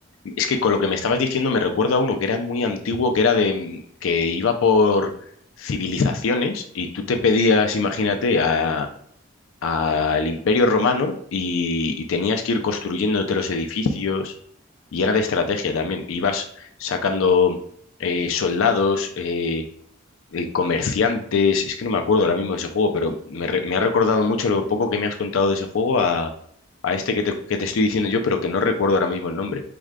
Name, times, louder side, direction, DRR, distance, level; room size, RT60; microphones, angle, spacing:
voice 1, 0.2-5.1 5.6-8.9 9.6-14.3 14.9-17.6 18.0-19.6 20.3-26.3 26.8-29.6, left 4 dB, 75° left, 5 dB, 0.4 m, -22 dB
4.7 x 2.2 x 2.3 m, 0.64 s
head